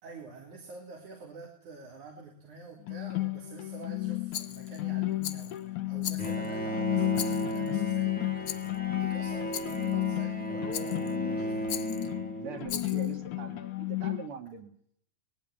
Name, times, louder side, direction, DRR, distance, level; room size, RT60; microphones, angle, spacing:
voice 1, 0.0-8.6 8.9-11.7, right 3 dB, 80° right, 0 dB, 4.6 m, -47 dB
sound 1, 2.9-14.3, left 18 dB, 80° left, 2.7 m, -33 dB
Rattle, 4.3-4.8 5.2-5.6 6.0-6.5 7.1-7.7 8.5-8.8 9.5-9.9 10.7-11.2 11.7-12.1 12.7-13.1, left 10 dB, 60° left, 1.5 m, -39 dB
Bowed string instrument, 6.2-13.0, right 1 dB, 10° left, 0.5 m, -35 dB
voice 2, 12.0-14.7, right 6 dB, 50° right, 6 dB, 2.6 m, -42 dB
20.5 x 15.5 x 9.1 m, 0.65 s
omnidirectional pair, 3.4 m